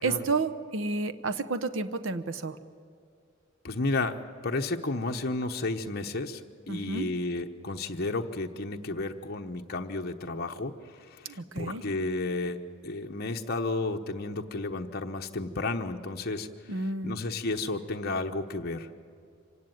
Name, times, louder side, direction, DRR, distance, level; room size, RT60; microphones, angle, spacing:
voice 1, 0.0-2.6 6.7-7.1 11.2-11.8 16.7-17.2, right 3 dB, 65° right, 10 dB, 0.9 m, -31 dB
voice 2, 3.6-4.2 4.4-6.4 6.7-10.7 11.1-16.5 17.0-18.9, left 2 dB, 50° left, 3 dB, 1.0 m, -32 dB
25.5 x 17.0 x 9.3 m, 2.4 s
head